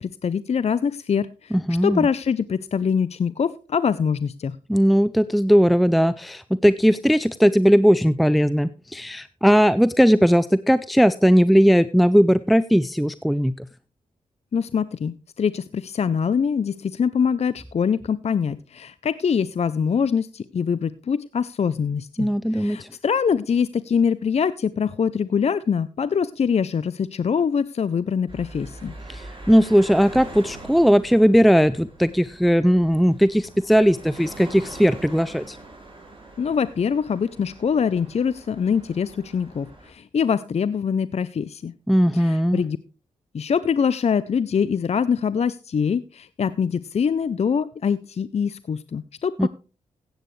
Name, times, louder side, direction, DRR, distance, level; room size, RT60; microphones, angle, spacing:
voice 1, 0.0-1.6 1.8-4.6 14.5-28.9 36.4-41.7 42.1-42.8 43.3-49.5, left 6 dB, 50° left, 16 dB, 0.5 m, -24 dB
voice 2, 1.5-2.1 4.7-13.5 22.2-22.9 29.1-35.6 41.9-42.6 49.4-49.5, equal, ahead, 15 dB, 0.5 m, -18 dB
sound 1, 28.3-39.9, right 2 dB, 35° right, 7.0 m, -43 dB
15.5 x 9.1 x 3.2 m, 0.34 s
cardioid pair, 50°, 14 cm